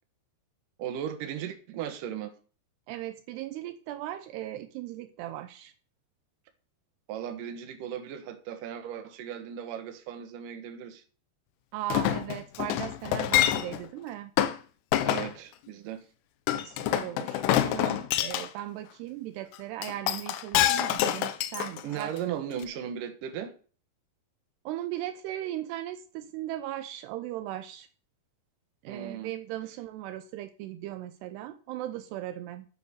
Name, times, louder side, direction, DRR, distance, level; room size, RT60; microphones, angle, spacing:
voice 1, 0.8-2.3 7.1-11.0 15.0-16.1 21.8-23.5 28.9-29.3, right 9 dB, 60° right, 2.6 m, -37 dB
voice 2, 2.9-5.7 11.7-14.3 16.6-22.1 24.7-27.9 28.8-32.7, right 13 dB, 80° right, 2.7 m, -37 dB
Chink clink, 11.9-13.9 14.4-14.6 14.9-15.3 16.5-18.5 19.8-22.2 22.6-22.7, left 12 dB, 85° left, 2.9 m, -26 dB
8.0 x 7.9 x 6.8 m
omnidirectional pair, 4.8 m